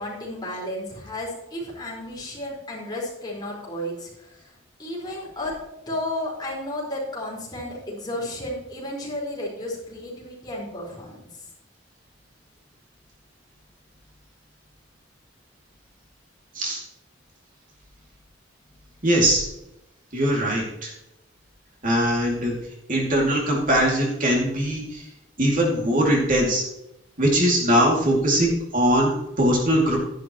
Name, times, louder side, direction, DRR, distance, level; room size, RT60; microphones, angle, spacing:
voice 1, 0.0-5.5 5.9-11.5, left 1 dB, 20° left, -4 dB, 4.6 m, -33 dB
voice 2, 19.0-19.4 20.1-20.9 21.8-22.5 22.9-25.0 25.4-26.6 27.2-30.0, right 1 dB, 45° right, -1 dB, 2.5 m, -21 dB
12.5 x 11.0 x 3.0 m, 0.87 s
head